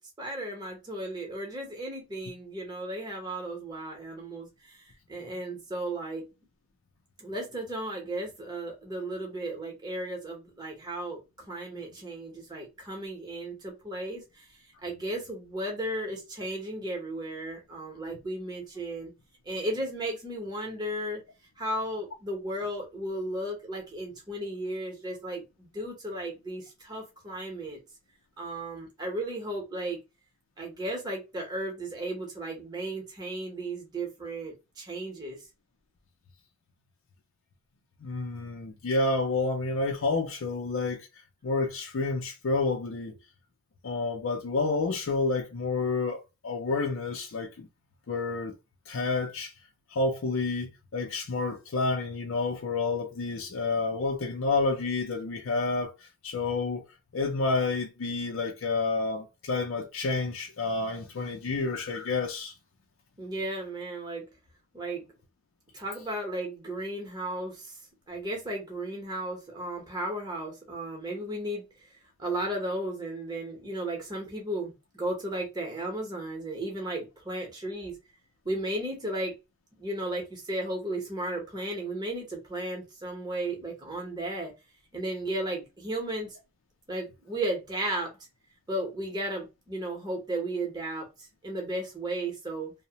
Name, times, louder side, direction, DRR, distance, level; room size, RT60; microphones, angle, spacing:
voice 1, 0.0-6.3 7.2-19.1 19.4-21.2 21.6-27.8 28.4-30.0 30.6-35.4 63.2-64.2 64.7-65.1 65.7-67.7 68.1-71.9 72.2-78.0 78.4-79.4 79.8-84.5 84.9-86.4 86.9-88.1 88.7-92.7, right 1 dB, 20° right, 0.8 m, -35 dB
voice 2, 38.0-41.0 41.4-43.1 43.8-47.7 48.1-48.5 48.9-49.5 49.9-55.9 56.2-56.8 57.1-62.5, left 3 dB, 70° left, 0.5 m, -29 dB
2.8 x 2.0 x 2.8 m
head